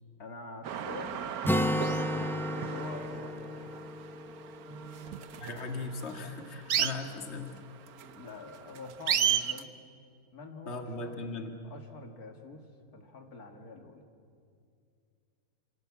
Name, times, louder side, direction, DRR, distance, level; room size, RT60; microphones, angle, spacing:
voice 1, 0.2-1.4 2.5-3.9 4.6-5.2 8.1-9.8 10.3-11.3 11.6-14.1, left 2 dB, 80° left, 4 dB, 2.6 m, -46 dB
sound 1, 0.6-9.6, right 9 dB, 75° right, 1.4 m, -34 dB
Acoustic guitar, 1.4-5.2, left 1 dB, 5° left, 0.4 m, -33 dB
voice 2, 5.4-7.6 10.7-11.5, left 3 dB, 45° left, 4 dB, 2.2 m, -38 dB
27.0 x 27.0 x 7.4 m, 2.4 s
omnidirectional pair, 1.6 m